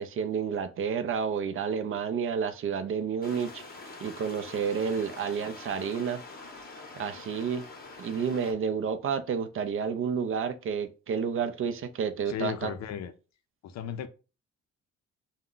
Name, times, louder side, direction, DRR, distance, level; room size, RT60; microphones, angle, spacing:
voice 1, 0.0-3.6 4.0-6.2 7.0-7.6 8.0-12.7, right 6 dB, 45° right, 0.4 m, -30 dB
sound 1, 3.2-8.5, left 3 dB, 30° left, 0.7 m, -45 dB
voice 2, 12.3-13.1 13.6-14.1, left 9 dB, 60° left, 0.5 m, -35 dB
2.3 x 2.1 x 3.7 m
cardioid pair, 90°, 30 cm